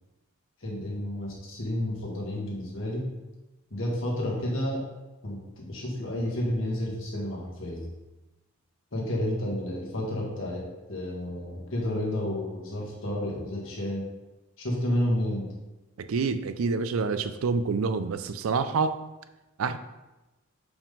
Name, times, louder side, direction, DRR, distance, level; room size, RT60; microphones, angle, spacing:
voice 1, 0.6-3.1 3.7-4.9 5.2-7.9 8.9-14.1 14.6-15.5, left 1 dB, 70° left, -3 dB, 1.6 m, -31 dB
voice 2, 16.0-19.0 19.6-19.8, right 4 dB, 80° right, 11 dB, 0.4 m, -27 dB
4.9 x 3.7 x 5.2 m, 1.1 s
head